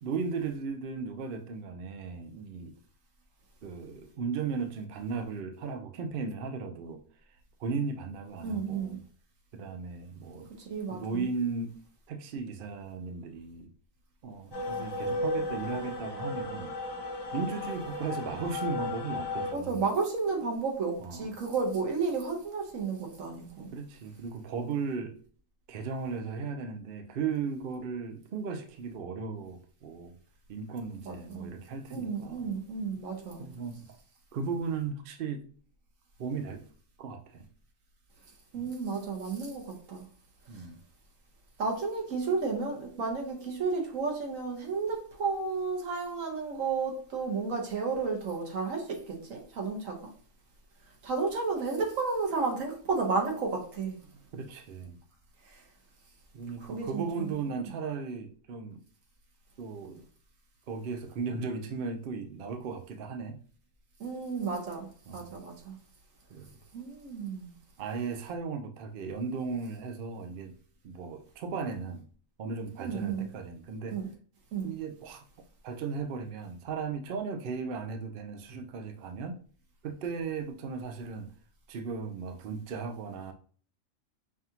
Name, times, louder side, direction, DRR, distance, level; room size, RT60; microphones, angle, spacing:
voice 1, 0.0-2.8 3.6-7.0 7.6-9.0 9.5-10.5 10.9-11.7 12.1-13.7 14.2-16.7 17.3-19.8 21.0-21.3 23.7-25.1 25.7-30.1 30.5-32.5 33.4-33.9 34.3-35.4 36.2-36.6 37.0-37.4 38.6-38.7 40.5-40.8 54.3-55.0 56.3-58.8 59.6-60.0 60.7-63.4 65.1-65.3 66.3-66.5 67.8-70.5 70.8-72.1 72.4-74.0 74.6-75.2 75.6-79.4 79.8-81.3 81.7-83.3, right 5 dB, 55° right, 0.6 m, -36 dB
voice 2, 8.4-9.0 10.6-11.2 19.5-23.7 31.0-31.5 31.9-33.5 38.5-40.0 41.6-50.1 51.0-54.0 56.7-57.3 64.0-65.7 66.7-67.5 72.8-73.3 73.9-74.1 74.5-74.7, right 4 dB, 85° right, 1.4 m, -32 dB
sound 1, 14.5-19.5, left 2 dB, 25° left, 0.8 m, -34 dB
5.4 x 2.5 x 2.8 m
omnidirectional pair, 1.3 m